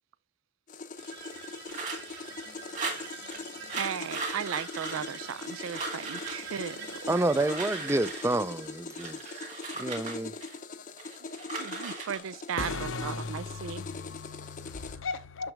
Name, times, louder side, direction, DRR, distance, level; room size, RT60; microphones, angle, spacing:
sound 1, 0.7-15.0, left 4 dB, 40° left, 0.6 m, -42 dB
sound 2, 1.0-9.4, right 6 dB, 55° right, 2.4 m, -46 dB
sound 3, 1.7-2.2 2.7-3.4 3.7-5.5 5.7-6.4 7.1-8.4 8.9-10.6 11.0-12.2, right 3 dB, 35° right, 2.0 m, -38 dB
voice 1, 3.7-7.2 11.2-11.3 11.6-13.9, right 8 dB, 90° right, 0.4 m, -36 dB
voice 2, 7.1-9.4 9.8-10.3, right 2 dB, 15° right, 0.3 m, -29 dB
voice 3, 12.6-15.5, left 4 dB, 90° left, 0.7 m, -37 dB
6.2 x 6.1 x 3.4 m
head